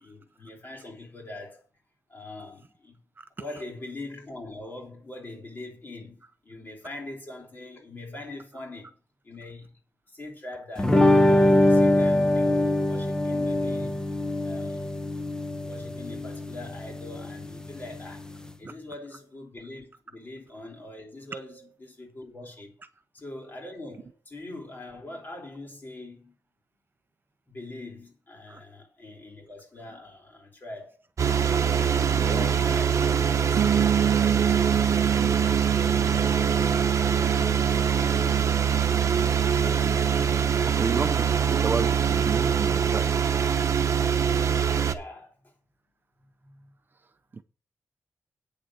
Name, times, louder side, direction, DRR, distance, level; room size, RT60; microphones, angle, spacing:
voice 1, 0.0-1.6 2.1-3.0 3.4-8.9 9.2-9.7 10.1-14.1 14.4-14.8 15.7-18.3 18.6-22.7 23.1-26.3 27.5-31.7 32.0-38.7 44.8-45.5 46.4-46.7, left 2 dB, 35° left, 3.4 m, -43 dB
sound 1, 10.8-18.5, left 1 dB, 10° left, 0.9 m, -23 dB
sound 2, 31.2-44.9, right 7 dB, 60° right, 0.9 m, -24 dB
sound 3, 33.6-43.3, right 9 dB, 80° right, 0.5 m, -30 dB
voice 2, 40.3-43.1 47.3-47.4, right 4 dB, 35° right, 0.5 m, -32 dB
8.9 x 6.7 x 6.2 m
wide cardioid pair, 175°, 6 cm